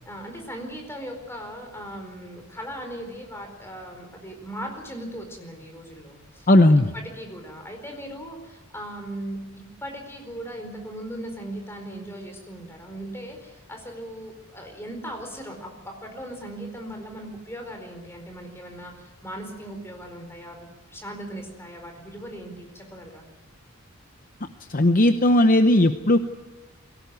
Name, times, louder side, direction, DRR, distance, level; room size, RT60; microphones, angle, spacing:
voice 1, 0.1-23.3, right 1 dB, 10° left, 3 dB, 4.6 m, -38 dB
voice 2, 6.5-6.9 24.7-26.2, left 1 dB, 40° left, 8 dB, 0.8 m, -16 dB
23.0 x 17.5 x 9.5 m, 1.2 s
head